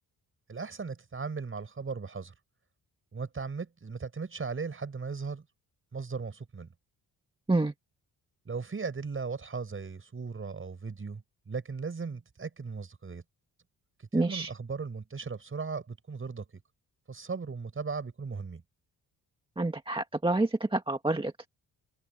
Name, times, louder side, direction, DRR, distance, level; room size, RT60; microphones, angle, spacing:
voice 1, 0.5-2.3 3.1-5.4 5.9-6.7 8.4-13.2 14.0-16.4 17.1-18.6, right 5 dB, 35° right, 6.2 m, -37 dB
voice 2, 14.1-14.5 19.6-21.5, right 2 dB, 15° right, 1.9 m, -28 dB
open air
cardioid pair, 100°, 37 cm